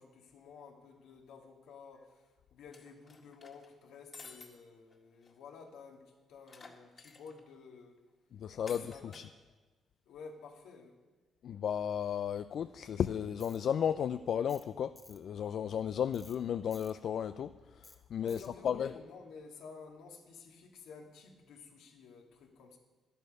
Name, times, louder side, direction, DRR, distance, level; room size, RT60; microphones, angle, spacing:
voice 1, 0.0-8.0 8.7-9.2 10.0-11.0 18.2-22.8, left 5 dB, 85° left, 1 dB, 1.9 m, -52 dB
sound 1, 2.7-3.7 4.1-4.5 4.9-5.0 5.2-5.3 6.5-7.4 8.7-9.3, left 4 dB, 40° left, 1.9 m, -52 dB
voice 2, 8.4-9.3 11.4-17.5 18.1-18.9, left 8 dB, 65° left, 11 dB, 0.3 m, -34 dB
Tools, 13.4-13.6 14.5-14.7 15.0-15.2 16.1-16.4 16.7-16.9 17.8-18.0 18.3-18.5, left 2 dB, 15° left, 1.2 m, -56 dB
11.5 x 11.0 x 5.3 m, 1.2 s
cardioid pair, 90°, 0 cm